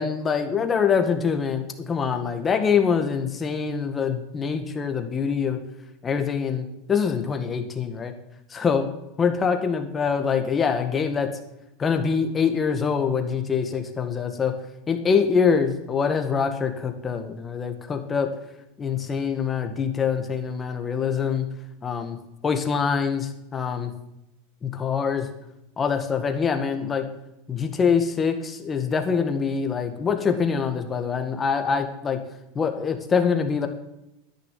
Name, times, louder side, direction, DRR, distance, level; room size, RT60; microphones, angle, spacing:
voice 1, 0.0-5.6 6.0-8.1 8.5-8.9 9.2-11.3 11.8-14.5 14.9-18.3 18.8-21.5 21.8-22.2 22.4-23.9 24.6-25.3 25.8-27.1 27.5-32.2 32.5-33.7, left 6 dB, 20° left, 6 dB, 1.8 m, -24 dB
10.5 x 10.0 x 9.3 m, 0.89 s
supercardioid pair, 135°, 0 cm